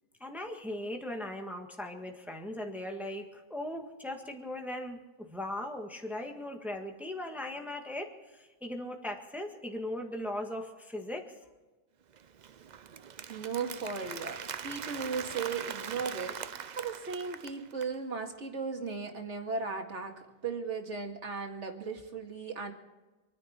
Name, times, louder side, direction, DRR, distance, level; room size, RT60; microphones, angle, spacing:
voice 1, 0.2-11.3, left 1 dB, ahead, 3 dB, 1.6 m, -39 dB
Applause, 12.1-17.9, right 7 dB, 50° right, 0.6 m, -42 dB
voice 2, 13.3-20.1 20.4-22.7, right 5 dB, 75° right, 3 dB, 2.3 m, -36 dB
26.5 x 10.5 x 4.4 m, 1.2 s
omnidirectional pair, 1.2 m